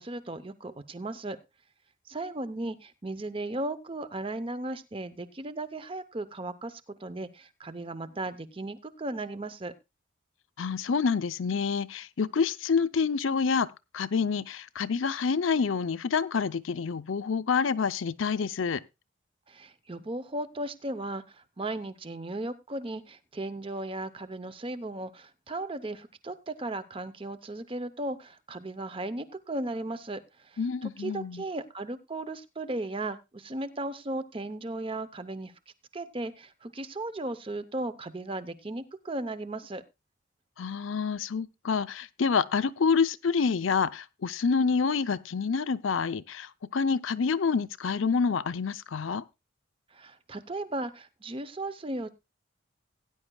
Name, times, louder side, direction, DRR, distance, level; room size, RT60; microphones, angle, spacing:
voice 1, 0.0-1.4 2.1-9.7 19.5-35.5 35.9-39.8 49.9-52.1, right 2 dB, 25° right, 0.7 m, -36 dB
voice 2, 10.6-13.7 13.9-18.8 30.6-31.4 40.6-49.2, left 5 dB, 80° left, 0.6 m, -27 dB
18.0 x 9.9 x 2.3 m
head